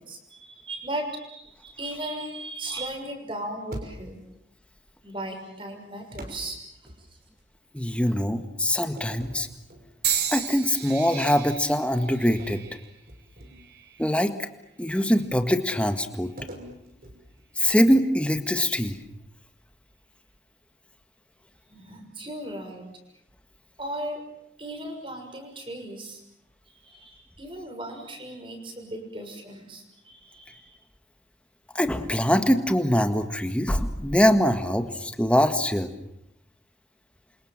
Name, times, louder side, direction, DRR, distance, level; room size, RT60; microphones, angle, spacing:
voice 1, 0.0-4.2 5.0-7.1 21.7-22.8 23.8-24.2 24.6-26.2 26.7-30.7, right 1 dB, 30° right, 4 dB, 6.4 m, -37 dB
sound 1, 3.7-4.4 6.1-7.5 9.0-10.3 10.8-11.0 12.3-13.8 16.4-18.0, equal, 50° right, 6.0 m, -43 dB
voice 2, 7.7-9.5 10.3-12.6 14.0-14.3 14.8-16.3 17.6-19.0 31.7-35.9, equal, 5° left, 7 dB, 1.7 m, -23 dB
sound 2, 10.0-14.2 14.9-15.3 16.3-16.5, right 9 dB, 70° right, 3.8 m, -34 dB
29.0 x 26.0 x 7.5 m, 0.80 s
head